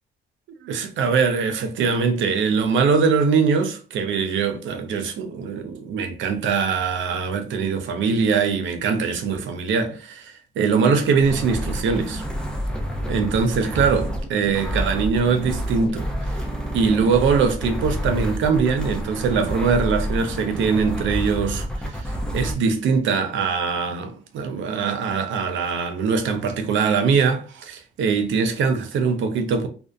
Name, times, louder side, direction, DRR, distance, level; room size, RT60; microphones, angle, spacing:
voice 1, 0.6-12.2 13.1-16.1 16.7-29.7, right 5 dB, 75° right, 0.5 m, -22 dB
sound 1, 11.1-22.5, equal, 5° left, 0.5 m, -28 dB
2.6 x 2.0 x 2.4 m
cardioid pair, 90°, 20 cm